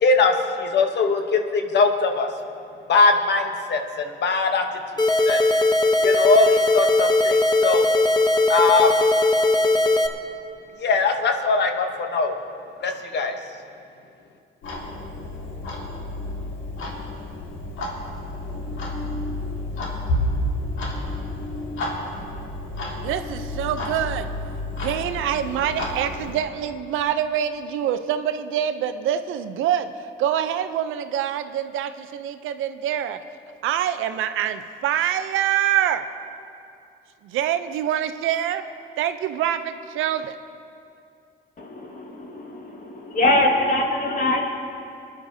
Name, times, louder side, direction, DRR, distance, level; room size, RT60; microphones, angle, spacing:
voice 1, 0.0-2.3 2.9-4.6 5.2-5.4 6.0-7.8 8.5-8.9 10.8-12.3 12.8-13.4, left 4 dB, 60° left, 5 dB, 1.0 m, -21 dB
sound 1, 5.0-10.1, left 2 dB, 20° left, 0.8 m, -19 dB
Clock, 14.6-26.4, left 1 dB, 85° left, 1.8 m, -30 dB
voice 2, 23.0-24.3 24.8-33.2 33.6-36.0 37.2-38.6 39.0-40.4, right 10 dB, 85° right, 10 dB, 0.6 m, -25 dB
voice 3, 41.6-44.5, left 1 dB, 45° left, 1 dB, 1.8 m, -23 dB
26.5 x 10.0 x 2.7 m, 2.5 s
cardioid pair, 90°, 20 cm